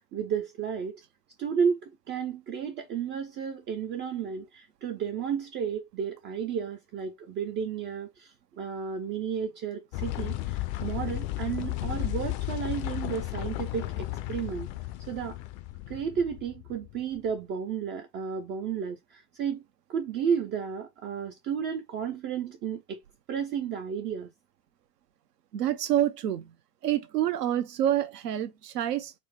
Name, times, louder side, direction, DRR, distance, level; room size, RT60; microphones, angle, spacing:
voice 1, 0.1-1.0 1.4-14.7 15.1-15.4 15.9-19.6 19.9-23.0 23.3-24.3, right 7 dB, 25° right, 0.4 m, -32 dB
sound 1, 9.9-17.3, left 17 dB, 45° left, 0.5 m, -34 dB
voice 2, 25.5-26.5 26.8-29.1, right 11 dB, 70° right, 0.7 m, -27 dB
4.1 x 2.0 x 3.2 m
figure-of-eight pair, 85°, 49 cm